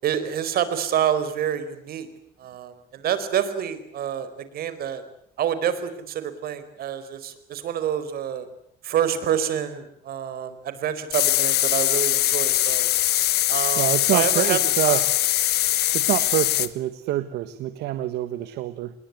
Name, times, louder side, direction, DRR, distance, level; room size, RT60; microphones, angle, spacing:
voice 1, 0.0-2.1 2.4-5.0 5.4-8.5 8.8-12.9 13.5-15.0, right 9 dB, 65° right, 12 dB, 4.4 m, -27 dB
sound 1, 11.1-16.7, left 14 dB, 75° left, 1.5 m, -22 dB
voice 2, 13.8-15.0 15.9-18.9, right 14 dB, 80° right, 12 dB, 1.5 m, -26 dB
27.5 x 21.5 x 9.6 m, 0.70 s
cardioid pair, 110°, 17 cm